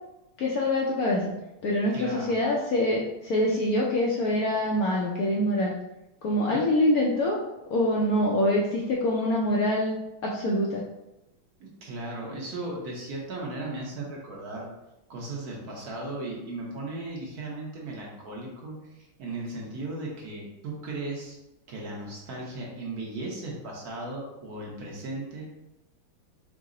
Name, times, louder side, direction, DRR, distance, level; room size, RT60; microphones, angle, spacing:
voice 1, 0.4-1.3 1.6-5.7 6.2-7.4 7.7-9.9 10.2-10.8, left 1 dB, 70° left, -3 dB, 0.9 m, -25 dB
voice 2, 1.9-2.3 6.4-6.6 11.6-14.7 15.1-21.4 21.7-25.4, right 2 dB, 60° right, -3 dB, 1.2 m, -36 dB
4.7 x 2.1 x 3.7 m, 0.92 s
omnidirectional pair, 2.0 m